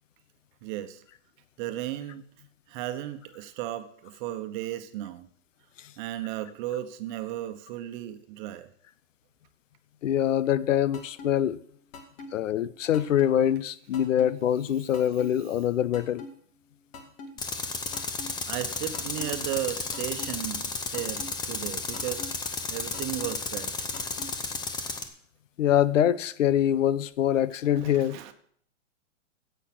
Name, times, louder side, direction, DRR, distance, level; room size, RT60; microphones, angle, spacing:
voice 1, 0.6-1.0 1.6-2.3 2.7-5.3 6.0-8.7 18.4-22.3 22.7-23.7 24.4-24.5 27.8-28.3, right 13 dB, 40° right, 1.1 m, -35 dB
voice 2, 10.0-11.6 12.3-16.2 25.6-28.2, left 10 dB, 85° left, 0.7 m, -24 dB
sound 1, 10.9-11.3 11.9-12.3 12.9-13.3 13.9-14.3 14.9-15.3 15.9-16.3 16.9-17.3 17.9-18.3 18.9-19.3 19.9-20.3 20.9-21.3 21.9-22.3 22.9-23.3 23.9-24.3, left 3 dB, 45° left, 2.4 m, -41 dB
Tools, 17.4-25.1, left 4 dB, 10° left, 0.8 m, -33 dB
10.0 x 8.2 x 6.1 m
hypercardioid pair, 140°, 37 cm